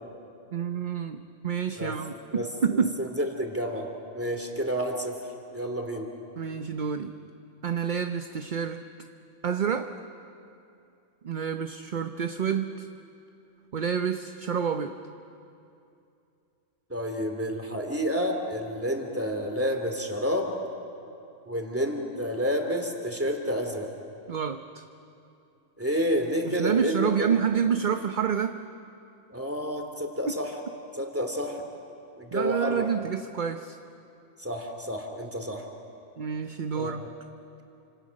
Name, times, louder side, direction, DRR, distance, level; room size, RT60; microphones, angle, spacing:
voice 1, 0.5-3.0 6.4-7.1 7.6-8.9 9.4-9.9 11.2-12.9 13.7-15.0 24.3-24.8 26.5-28.6 32.3-33.8 36.2-37.1, right 7 dB, 45° right, 7 dB, 0.8 m, -28 dB
voice 2, 2.3-5.2 5.5-6.1 16.9-20.5 21.5-23.9 25.8-27.4 29.3-30.5 30.9-31.6 32.2-32.9 34.4-35.7 36.7-36.9, equal, 10° right, 4 dB, 2.7 m, -30 dB
29.0 x 26.5 x 6.4 m, 2.7 s
omnidirectional pair, 1.3 m